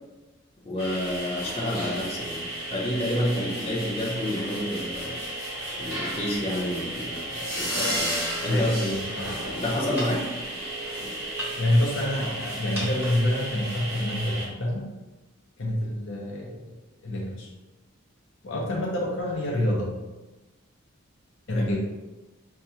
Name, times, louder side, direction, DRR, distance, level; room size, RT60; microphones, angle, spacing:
voice 1, 0.6-5.2 5.7-8.7 9.6-10.3 21.5-21.6, left 1 dB, 30° left, -6 dB, 0.8 m, -29 dB
sound 1, 0.8-14.5, right 1 dB, 10° right, 1.0 m, -33 dB
voice 2, 8.4-9.3 11.6-14.9 15.6-16.6 17.0-17.5 18.4-20.0 21.5-21.8, left 1 dB, 60° left, -1 dB, 0.6 m, -27 dB
5.4 x 2.2 x 2.7 m, 1.1 s
head